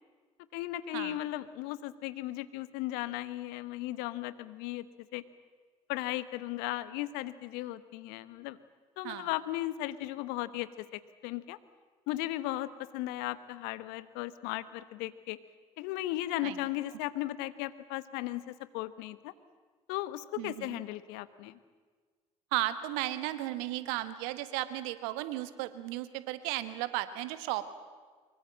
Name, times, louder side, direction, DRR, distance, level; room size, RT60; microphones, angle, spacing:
voice 1, 0.5-4.8 5.1-5.2 5.9-8.6 9.0-11.6 12.1-15.4 15.8-19.3 19.9-21.5, left 15 dB, 70° left, 15 dB, 1.1 m, -36 dB
voice 2, 20.4-20.8 22.5-27.7, right 15 dB, 70° right, 12 dB, 1.4 m, -35 dB
24.5 x 22.5 x 7.5 m, 1.5 s
hypercardioid pair, 55°, 17 cm